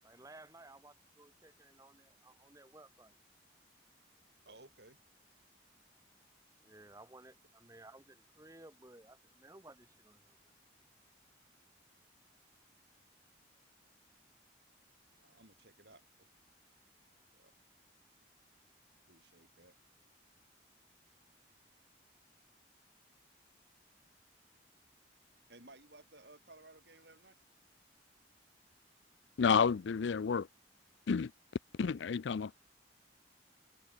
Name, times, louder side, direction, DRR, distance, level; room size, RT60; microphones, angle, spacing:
voice 1, 0.0-3.1 6.6-10.4, right 2 dB, 15° right, 1.3 m, -57 dB
voice 2, 4.4-5.0 15.2-16.3 17.3-17.5 19.1-19.8 25.5-27.4, right 2 dB, 65° right, 6.9 m, -58 dB
voice 3, 29.4-30.5 31.1-31.3 31.8-32.5, left 6 dB, 75° left, 0.4 m, -30 dB
head